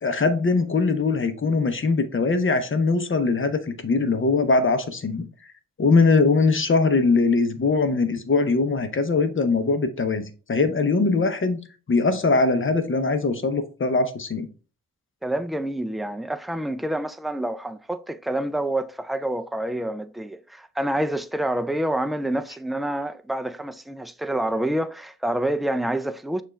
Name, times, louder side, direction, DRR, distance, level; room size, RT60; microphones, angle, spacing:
voice 1, 0.0-5.3 5.8-11.6 11.9-14.5, left 3 dB, 35° left, 0.8 m, -21 dB
voice 2, 15.2-26.4, right 1 dB, ahead, 0.3 m, -27 dB
6.5 x 2.5 x 3.1 m
cardioid pair, 55°, 34 cm